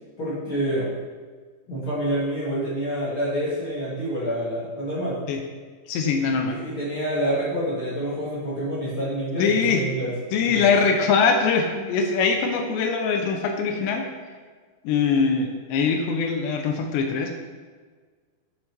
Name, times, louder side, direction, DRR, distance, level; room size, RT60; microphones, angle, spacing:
voice 1, 0.2-0.9 1.7-5.2 6.2-10.1 10.4-10.6, right 1 dB, 60° left, -9 dB, 1.4 m, -27 dB
voice 2, 5.9-6.6 9.4-9.8 10.3-14.1 14.8-17.3, left 5 dB, 75° left, 3 dB, 3.0 m, -22 dB
8.6 x 5.7 x 4.4 m, 1.5 s
omnidirectional pair, 5.2 m